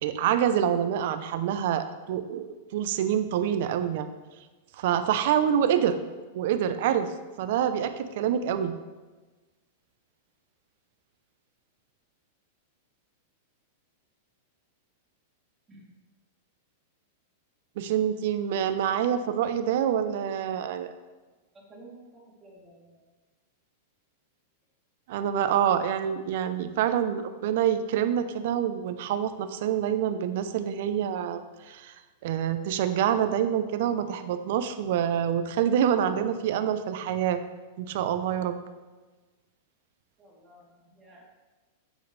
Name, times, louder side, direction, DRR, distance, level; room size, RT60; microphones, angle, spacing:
voice 1, 0.0-4.1 4.7-6.0 6.3-7.1 7.4-8.7 17.8-20.9 25.1-31.9 32.2-37.4 37.8-38.6, right 9 dB, 65° right, 11 dB, 0.7 m, -26 dB
voice 2, 21.5-23.0 40.2-41.2, right 2 dB, 20° right, -4 dB, 3.1 m, -52 dB
9.2 x 8.2 x 3.3 m, 1.2 s
hypercardioid pair, 110°, 0 cm